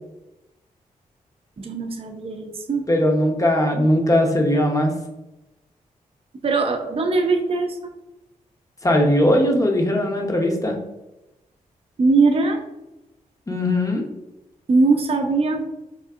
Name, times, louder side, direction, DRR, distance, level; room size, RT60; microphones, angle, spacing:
voice 1, 1.6-2.9 6.4-7.7 12.0-12.6 14.7-15.6, right 3 dB, 40° right, 4 dB, 0.5 m, -20 dB
voice 2, 2.9-4.9 8.8-10.8 13.5-14.1, left 1 dB, 20° left, 2 dB, 0.7 m, -19 dB
3.5 x 2.5 x 2.4 m, 0.95 s
supercardioid pair, 45°, 15 cm